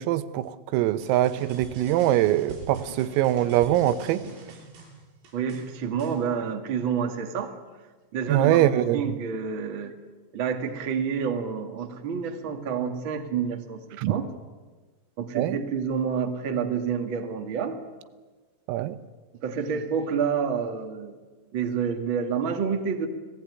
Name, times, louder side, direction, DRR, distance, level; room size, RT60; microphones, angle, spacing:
voice 1, 0.0-4.2 8.3-9.0 14.0-14.1 15.4-15.6 18.7-19.0, right 13 dB, 90° right, 12 dB, 3.8 m, -23 dB
sound 1, 1.0-6.2, right 3 dB, 75° right, 9.1 m, -44 dB
voice 2, 5.3-7.6 8.1-10.0 10.3-13.8 14.1-14.3 15.2-17.8 19.4-21.2 21.5-23.1, right 6 dB, 50° right, 4 dB, 1.5 m, -28 dB
30.0 x 18.5 x 9.7 m, 1.3 s
omnidirectional pair, 5.9 m